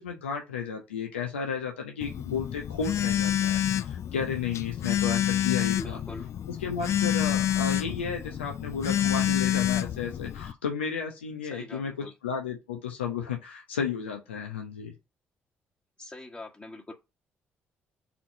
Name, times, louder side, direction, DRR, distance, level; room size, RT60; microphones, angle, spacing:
voice 1, 0.0-6.0 6.5-14.9, left 6 dB, 85° left, 0.8 m, -33 dB
Telephone, 2.0-10.5, left 11 dB, 55° left, 0.5 m, -28 dB
voice 2, 5.8-6.3 11.4-12.1 16.0-16.9, left 2 dB, 20° left, 1.4 m, -43 dB
4.3 x 4.3 x 5.2 m
figure-of-eight pair, 45°, 6 cm